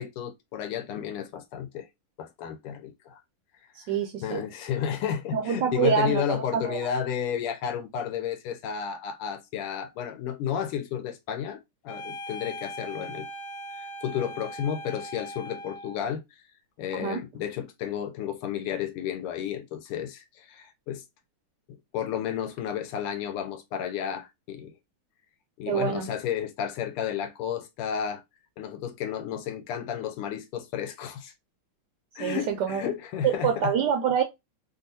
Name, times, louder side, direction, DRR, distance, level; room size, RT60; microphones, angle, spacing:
voice 1, 0.0-1.9 2.2-3.2 4.2-13.3 13.7-16.2 16.8-21.0 21.9-24.7 25.6-28.2 28.6-31.3 32.1-33.7, left 9 dB, 85° left, 1.5 m, -32 dB
voice 2, 3.7-4.4 5.3-6.8 16.9-17.2 25.7-26.1 32.2-32.9 33.2-34.2, right 8 dB, 85° right, 0.9 m, -26 dB
sound 1, 11.9-16.1, equal, 55° left, 1.4 m, -40 dB
3.5 x 2.4 x 2.6 m
omnidirectional pair, 2.4 m